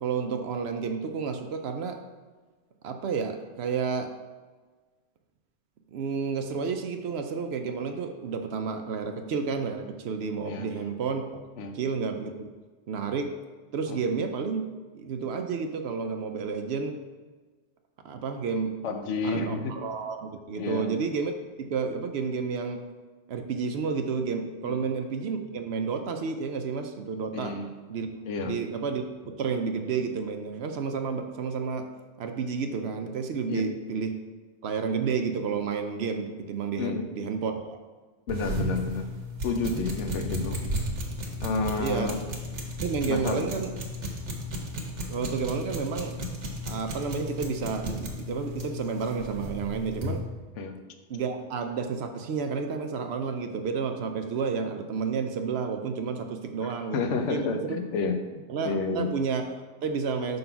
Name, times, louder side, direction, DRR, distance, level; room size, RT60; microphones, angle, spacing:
voice 1, 0.0-2.0 2.8-4.1 5.9-11.4 11.7-12.5 12.9-13.3 13.7-14.6 14.9-17.0 18.0-18.8 19.2-22.8 23.3-27.5 27.9-28.1 28.4-31.9 32.2-34.2 34.6-37.8 41.8-42.1 42.8-43.7 45.1-46.2 46.6-50.2 51.1-57.8 58.5-60.4, right 5 dB, 70° right, 6 dB, 0.8 m, -31 dB
voice 2, 18.8-19.7 20.6-20.9 24.6-24.8 27.3-27.7 28.2-28.6 33.5-33.7 36.8-37.1 38.3-39.1 39.4-40.6 41.4-42.2 43.1-43.5 50.6-50.8 56.6-59.1, left 4 dB, 85° left, 6 dB, 1.0 m, -30 dB
sound 1, 38.3-50.2, equal, 90° right, 1.4 m, -34 dB
5.5 x 4.0 x 5.6 m, 1.4 s
omnidirectional pair, 1.2 m